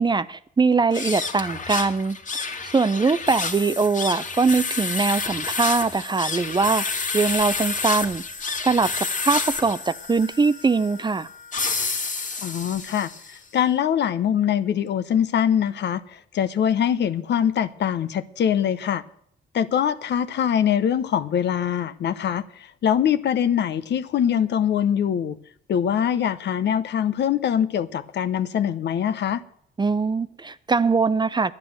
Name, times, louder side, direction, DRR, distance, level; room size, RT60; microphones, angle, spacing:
voice 1, 0.0-6.9 7.1-8.2 8.6-11.3 29.8-31.5, right 4 dB, 20° right, 16 dB, 0.5 m, -22 dB
sound 1, 0.9-13.4, left 4 dB, 40° left, 1.8 m, -29 dB
voice 2, 12.4-19.0 19.5-25.4 25.7-29.4, left 9 dB, 60° left, 14 dB, 0.8 m, -23 dB
11.0 x 9.7 x 7.8 m, 0.65 s
cardioid pair, 90°, 20 cm